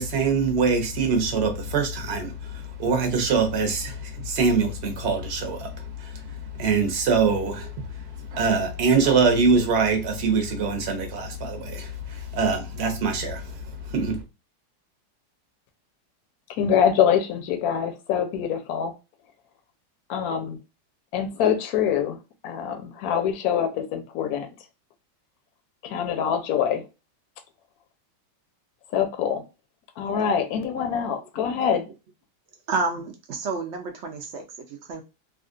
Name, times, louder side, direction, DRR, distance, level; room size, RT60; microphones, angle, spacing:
voice 1, 0.0-14.2, right 4 dB, 50° right, 0.9 m, -24 dB
voice 2, 16.5-18.9 20.1-20.6 21.1-22.2 22.4-24.5 25.8-26.8 28.9-29.4 30.0-31.9, left 8 dB, 70° left, 1.0 m, -24 dB
voice 3, 32.7-35.0, right 3 dB, 80° right, 0.6 m, -30 dB
3.5 x 2.4 x 2.4 m
omnidirectional pair, 1.9 m